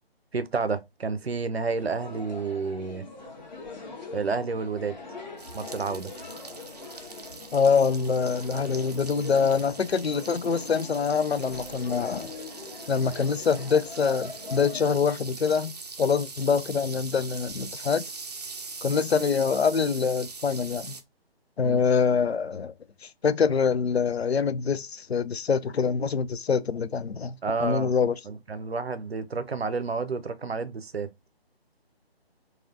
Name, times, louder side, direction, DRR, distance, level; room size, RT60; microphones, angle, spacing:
voice 1, 0.3-3.1 4.1-5.0 5.5-6.1 21.6-21.8 27.4-27.9 28.2-31.1, right 4 dB, 80° right, 0.7 m, -30 dB
sound 1, 1.7-14.9, left 4 dB, 45° left, 1.1 m, -42 dB
sound 2, 5.4-21.0, right 4 dB, 40° right, 0.5 m, -42 dB
voice 2, 7.5-12.3 12.9-15.7 16.0-18.0 18.8-21.0 21.6-22.7 23.2-28.2, left 6 dB, 85° left, 0.5 m, -25 dB
4.1 x 2.4 x 2.6 m
figure-of-eight pair, 145°, 31 cm